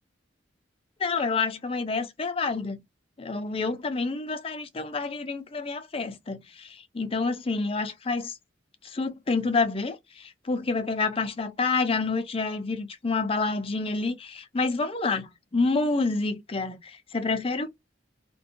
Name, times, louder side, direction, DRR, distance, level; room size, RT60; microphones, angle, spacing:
voice 1, 1.0-2.8 3.2-8.4 8.8-17.7, left 3 dB, 30° left, 0.5 m, -28 dB
2.5 x 2.2 x 2.6 m
head